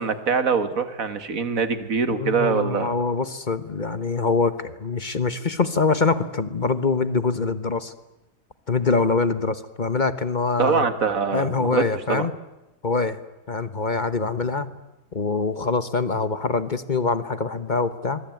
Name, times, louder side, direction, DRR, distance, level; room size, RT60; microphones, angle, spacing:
voice 1, 0.0-2.9 10.6-11.8 12.1-12.3, right 5 dB, 55° right, 11 dB, 2.2 m, -23 dB
voice 2, 2.1-7.9 8.7-10.9 11.3-12.3 12.8-13.2 13.5-14.7 15.1-18.2, left 4 dB, 30° left, 13 dB, 1.1 m, -24 dB
24.5 x 22.0 x 9.3 m, 0.99 s
omnidirectional pair, 1.8 m